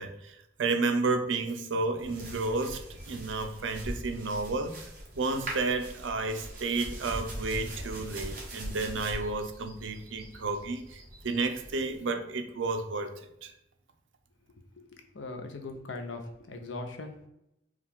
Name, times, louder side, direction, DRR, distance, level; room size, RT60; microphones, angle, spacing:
voice 1, 0.0-4.8 5.1-13.1 13.4-13.5, right 3 dB, 90° right, 0.6 m, -31 dB
sound 1, 2.0-12.0, right 1 dB, 50° right, 1.2 m, -42 dB
voice 2, 15.1-17.3, left 3 dB, 85° left, 0.7 m, -40 dB
4.7 x 2.4 x 3.5 m
head